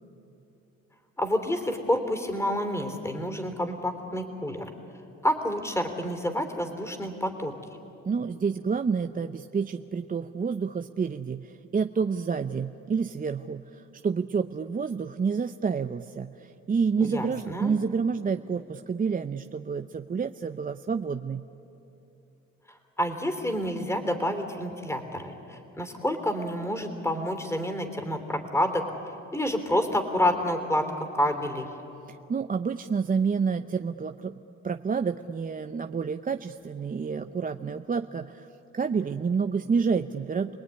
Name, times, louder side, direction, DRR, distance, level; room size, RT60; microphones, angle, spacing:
voice 1, 1.2-4.7 5.2-7.5 17.1-17.7 23.0-28.8 29.3-31.7, left 1 dB, 10° left, 6 dB, 3.4 m, -28 dB
voice 2, 8.1-21.5 32.1-34.4 34.6-38.5 38.7-40.6, right 5 dB, 30° right, 7 dB, 0.7 m, -29 dB
29.0 x 19.5 x 9.9 m, 2.9 s
cardioid pair, 90°, 30 cm